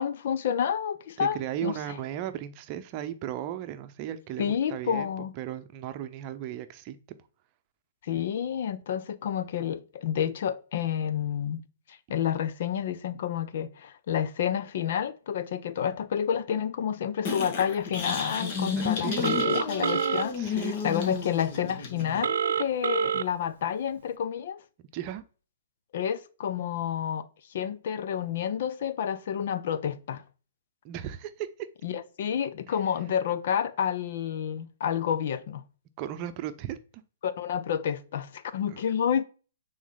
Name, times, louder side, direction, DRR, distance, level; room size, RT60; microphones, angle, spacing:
voice 1, 0.0-1.8 4.4-5.3 8.0-11.6 12.1-24.6 25.9-30.2 31.8-35.6 37.2-39.3, left 8 dB, 55° left, 0.7 m, -29 dB
voice 2, 1.2-5.1 5.4-7.0 18.8-19.4 20.4-20.8 24.9-25.2 30.8-31.5 32.7-32.8 36.0-36.8 38.7-38.8, right 11 dB, 35° right, 0.8 m, -36 dB
sound 1, 17.3-22.2, left 5 dB, 40° left, 2.0 m, -32 dB
Telephone, 19.2-20.2 22.2-23.2, right 8 dB, 75° right, 0.4 m, -27 dB
9.3 x 4.0 x 4.0 m
hypercardioid pair, 145°, 0 cm